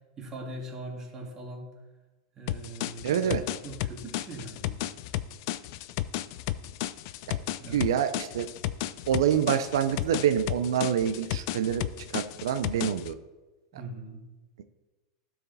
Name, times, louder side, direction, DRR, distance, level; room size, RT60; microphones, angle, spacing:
voice 1, 0.2-1.7 2.4-3.4 3.6-4.8 7.6-7.9 13.7-14.2, right 2 dB, 25° right, -1 dB, 2.3 m, -41 dB
sound 1, 2.5-13.1, left 14 dB, 60° left, 0.4 m, -33 dB
voice 2, 3.0-3.4 7.3-7.4 7.7-8.5 9.1-11.8 12.1-13.2, right 9 dB, 85° right, 9 dB, 0.5 m, -26 dB
12.0 x 4.9 x 4.1 m, 1.2 s
supercardioid pair, 140°, 2 cm